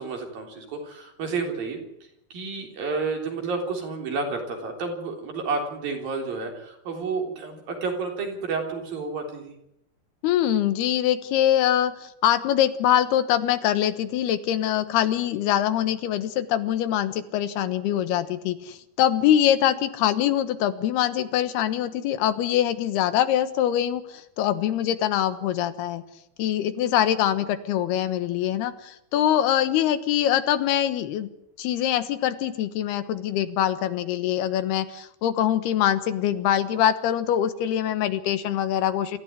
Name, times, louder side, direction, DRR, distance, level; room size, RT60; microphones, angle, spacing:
voice 1, 0.0-1.8 2.3-9.6, right 4 dB, 65° right, 3 dB, 5.4 m, -30 dB
voice 2, 10.2-26.0 26.4-31.3 31.6-39.2, left 11 dB, 80° left, 11 dB, 3.3 m, -23 dB
25.5 x 14.5 x 10.0 m, 0.81 s
omnidirectional pair, 4.5 m